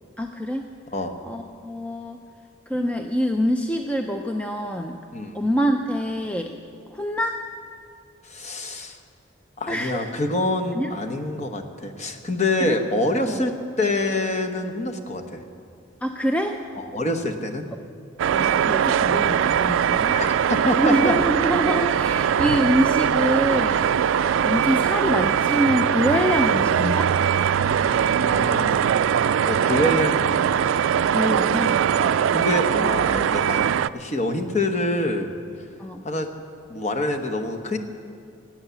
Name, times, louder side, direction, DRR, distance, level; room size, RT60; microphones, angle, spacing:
voice 1, 0.2-0.7 1.2-2.2 2.7-5.0 5.3-6.5 6.9-7.4 9.7-10.1 10.7-10.9 12.6-12.8 13.2-13.4 16.0-16.6 18.3-20.2 20.8-23.8 24.4-27.1 31.1-31.8 35.8-36.0, equal, 5° left, 4 dB, 0.5 m, -25 dB
voice 2, 5.1-5.5 8.3-9.0 9.6-15.4 16.7-17.7 20.1-21.1 27.6-28.9 29.5-30.7 32.0-35.3 36.0-36.3 36.7-37.8, left 1 dB, 35° left, 4 dB, 1.1 m, -26 dB
sound 1, 18.2-33.9, right 8 dB, 70° right, 0.3 m, -21 dB
17.0 x 9.0 x 8.2 m, 2.4 s
head